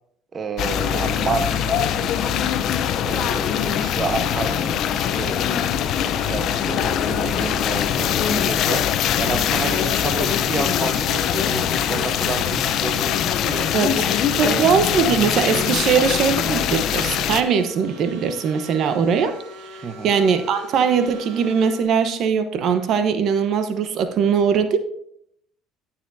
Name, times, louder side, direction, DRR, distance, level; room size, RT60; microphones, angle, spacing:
voice 1, 0.3-2.4 3.0-8.9 9.2-13.7 14.0-14.6 15.9-16.0 19.8-20.1, right 5 dB, 35° right, 9 dB, 0.9 m, -30 dB
sound 1, 0.6-17.4, left 9 dB, 60° left, 0.7 m, -22 dB
voice 2, 14.4-19.3 20.0-24.8, right 6 dB, 60° right, 9 dB, 1.0 m, -20 dB
sound 2, 15.7-21.8, right 3 dB, 75° right, 2.0 m, -41 dB
15.0 x 7.0 x 2.8 m, 0.71 s
supercardioid pair, 80°, 0 cm